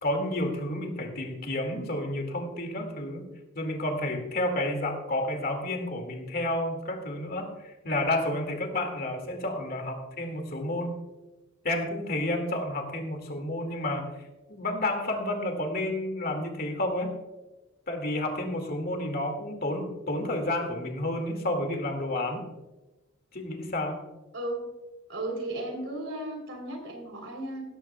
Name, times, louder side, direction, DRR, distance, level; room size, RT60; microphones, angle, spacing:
voice 1, 0.0-3.2 3.5-10.9 11.6-14.1 14.5-17.1 17.9-22.5 23.3-24.0, left 1 dB, 45° left, 4 dB, 2.2 m, -30 dB
voice 2, 24.3-24.7 25.1-27.6, right 1 dB, 65° right, 3 dB, 3.5 m, -35 dB
16.5 x 14.0 x 2.3 m, 1.1 s
head